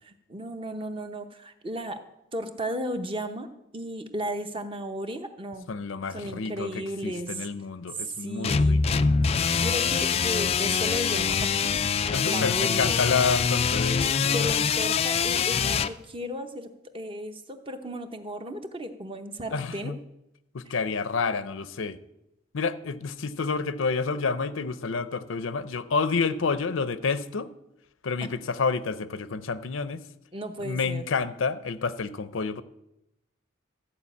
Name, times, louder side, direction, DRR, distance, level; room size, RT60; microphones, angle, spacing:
voice 1, 0.0-2.0 2.3-5.7 6.1-7.5 8.0-8.8 9.6-11.7 12.3-13.0 14.2-20.0 20.7-20.8 28.2-28.3 30.3-31.0, equal, 25° right, 7 dB, 0.8 m, -35 dB
voice 2, 5.7-9.0 12.1-14.5 19.5-20.0 20.5-22.0 22.5-27.5 28.0-30.0 30.6-32.6, left 4 dB, 85° left, 14 dB, 0.6 m, -29 dB
sound 1, 8.4-15.9, left 6 dB, 30° left, 0.3 m, -24 dB
13.5 x 4.9 x 8.4 m, 0.87 s
head